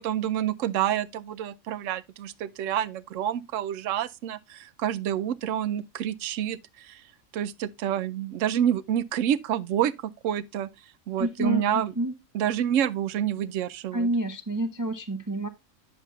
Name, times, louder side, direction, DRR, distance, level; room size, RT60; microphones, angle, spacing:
voice 1, 0.0-7.0 7.3-10.7 11.1-11.9 12.3-14.1, right 10 dB, 70° right, 0.9 m, -28 dB
voice 2, 11.2-12.1 13.9-15.5, right 1 dB, 30° right, 0.3 m, -28 dB
9.8 x 7.0 x 2.3 m
omnidirectional pair, 1.4 m